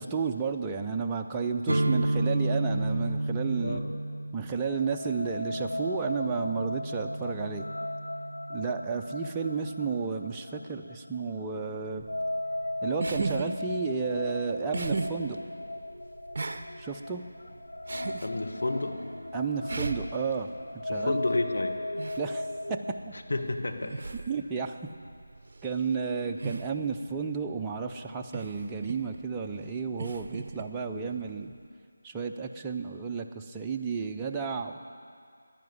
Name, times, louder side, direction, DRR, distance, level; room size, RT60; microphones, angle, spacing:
voice 1, 0.0-3.8 4.3-7.7 8.5-12.1 12.8-15.4 16.8-17.2 19.3-20.5 20.8-21.2 22.2-22.8 24.3-24.8 25.6-31.5 32.0-34.9, right 5 dB, 10° right, 2 dB, 0.5 m, -32 dB
sound 1, 1.7-9.4, right 1 dB, 80° right, 0.4 m, -32 dB
voice 2, 3.6-3.9 18.2-19.0 20.9-21.8 23.1-23.9 30.9-31.1, left 2 dB, 60° left, 3 dB, 1.5 m, -31 dB
sound 2, 4.5-23.0, left 1 dB, 80° left, 0.5 m, -37 dB
sound 3, 12.0-31.7, right 3 dB, 50° right, 0.7 m, -39 dB
10.5 x 10.5 x 9.5 m, 2.3 s
figure-of-eight pair, 165°, 0 cm